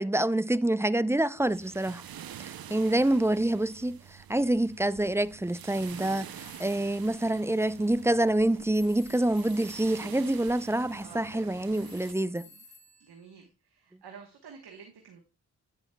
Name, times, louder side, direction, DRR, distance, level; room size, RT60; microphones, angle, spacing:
voice 1, 0.0-2.0 2.4-12.5, right 1 dB, 5° right, 0.4 m, -27 dB
sound 1, 1.4-12.1, right 10 dB, 70° right, 0.6 m, -47 dB
voice 2, 2.3-3.2 11.0-12.6 13.0-15.2, right 6 dB, 85° right, 1.2 m, -52 dB
sound 2, 5.7-8.0 8.7-10.2 11.7-13.5, left 2 dB, 20° left, 2.2 m, -55 dB
9.9 x 8.0 x 2.2 m
cardioid pair, 45°, 38 cm